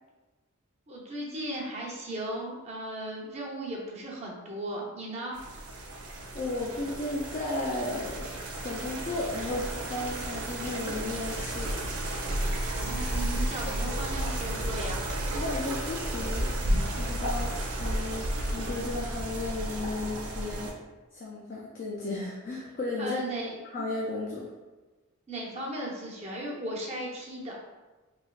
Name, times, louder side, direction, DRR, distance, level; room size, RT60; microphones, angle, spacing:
voice 1, 0.9-5.4 12.7-15.0 23.0-23.5 25.3-27.6, right 1 dB, 30° right, -3 dB, 0.6 m, -36 dB
sound 1, 5.3-20.7, right 1 dB, 80° right, 0.6 m, -32 dB
voice 2, 6.3-8.3 8.6-11.7 13.8-14.0 15.3-16.5 17.0-17.5 17.8-18.2 18.5-20.7 21.1-23.2 23.7-24.5, left 2 dB, 40° left, -3 dB, 0.4 m, -34 dB
3.1 x 2.9 x 2.3 m, 1.2 s
head